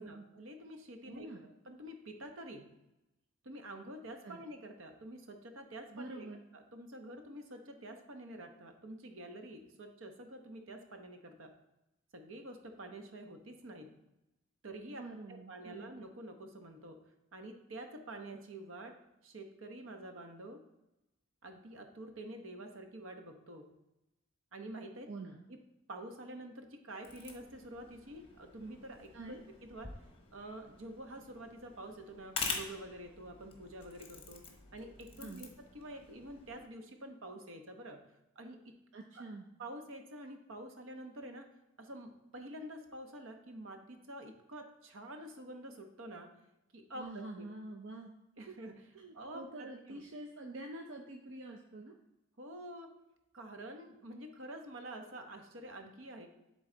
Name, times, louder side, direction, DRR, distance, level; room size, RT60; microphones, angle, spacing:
voice 1, 0.0-1.3 1.6-2.7 3.4-6.3 6.5-11.5 12.1-13.9 14.6-17.0 17.3-18.9 19.2-20.6 21.4-23.7 24.5-25.1 25.5-25.6 25.9-29.9 30.3-34.4 34.7-35.5 35.7-38.0 38.4-38.6 39.1-39.2 39.6-41.5 41.8-46.3 46.7-47.0 47.4-47.5 48.4-48.7 49.1-50.0 52.4-52.9 53.3-56.3, right 1 dB, 80° right, 5 dB, 0.9 m, -48 dB
voice 2, 1.1-1.4 4.2-4.4 5.9-6.4 14.9-15.9 25.1-25.4 29.1-29.4 35.2-35.5 38.9-39.5 46.9-48.1 48.5-48.6 48.9-52.0, right 2 dB, 65° right, 2 dB, 0.6 m, -46 dB
sound 1, 27.0-36.6, left 4 dB, 30° left, 1.0 m, -46 dB
10.5 x 3.9 x 3.9 m, 0.93 s
head